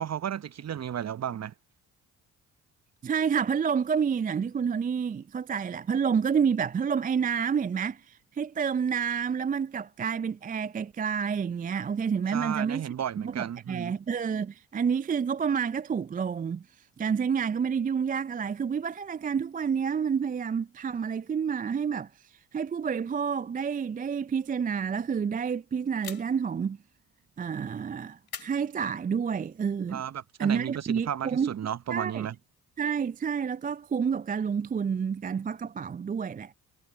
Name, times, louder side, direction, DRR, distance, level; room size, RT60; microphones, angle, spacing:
voice 1, 0.0-1.5 12.3-13.9 29.9-32.4, right 9 dB, 35° right, 0.8 m, -33 dB
voice 2, 3.0-12.9 13.2-16.6 17.0-22.1 22.5-26.8 27.4-30.0 30.4-31.5 31.9-32.3 32.8-36.5, right 6 dB, 20° right, 0.4 m, -29 dB
sound 1, 26.0-26.6 28.3-29.3, left 8 dB, 55° left, 7.5 m, -44 dB
hypercardioid pair, 45°, 45 cm